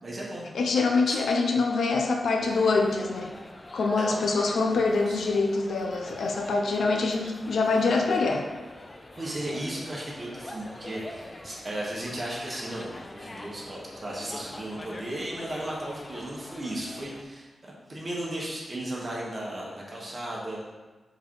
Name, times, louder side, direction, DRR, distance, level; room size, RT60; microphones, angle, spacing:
voice 1, 0.0-0.5 1.1-1.2 4.0-4.2 5.1-5.2 9.2-20.7, right 1 dB, 30° right, -4 dB, 1.5 m, -35 dB
voice 2, 0.5-3.3 3.7-8.5, left 3 dB, 80° left, 2 dB, 0.7 m, -25 dB
sound 1, 2.4-17.2, left 1 dB, 25° left, 0.5 m, -44 dB
5.1 x 4.4 x 4.7 m, 1.3 s
wide cardioid pair, 135°, 0 cm